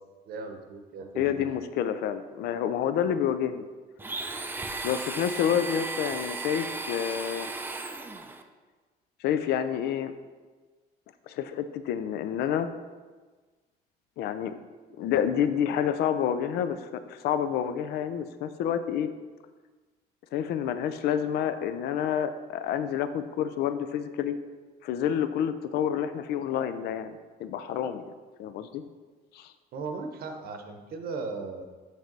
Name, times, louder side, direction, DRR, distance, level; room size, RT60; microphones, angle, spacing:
voice 1, 0.3-1.5 29.7-31.7, right 4 dB, 65° right, 6 dB, 0.8 m, -37 dB
voice 2, 1.2-3.7 4.8-7.5 9.2-10.1 11.3-12.7 14.2-14.5 15.0-19.1 20.3-24.3 24.8-28.1 28.4-28.8 29.3-29.5, left 9 dB, 75° left, 11 dB, 0.4 m, -28 dB
Domestic sounds home sounds, 4.0-8.4, right 3 dB, 10° right, 0.4 m, -35 dB
6.4 x 3.4 x 5.2 m, 1.3 s
cardioid pair, 110°, 17 cm